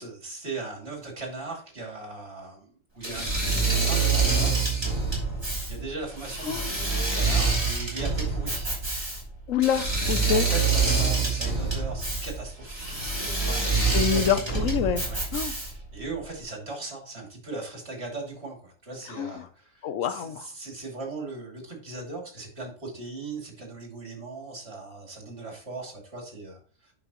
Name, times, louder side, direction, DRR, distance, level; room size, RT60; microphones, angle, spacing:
voice 1, 0.0-4.5 5.7-8.7 10.2-14.6 15.1-15.2 15.5-26.9, right 3 dB, 55° right, 0 dB, 3.0 m, -38 dB
Engine / Mechanisms, 3.0-15.9, right 4 dB, 20° right, 3.3 m, -26 dB
voice 2, 9.5-10.4 13.9-15.0 15.3-15.5 19.2-19.4 19.8-20.5, left 8 dB, 85° left, 12 dB, 1.1 m, -26 dB
9.2 x 5.8 x 3.0 m, 0.43 s
omnidirectional pair, 1.3 m